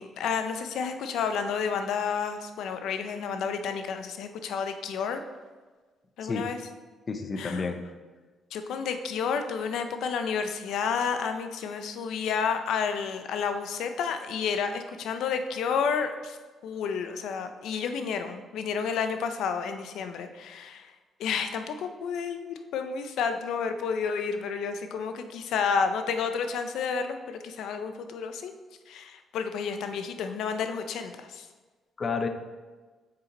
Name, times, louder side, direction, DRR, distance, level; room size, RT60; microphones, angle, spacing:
voice 1, 0.0-5.2 6.2-6.6 7.4-7.6 8.5-16.4 16.6-20.9 21.2-28.5 28.9-31.5, left 6 dB, 80° left, 8 dB, 0.5 m, -30 dB
voice 2, 7.1-7.8 32.0-32.3, left 4 dB, 40° left, 7 dB, 0.6 m, -30 dB
6.7 x 4.5 x 3.9 m, 1.4 s
cardioid pair, 90°, 0 cm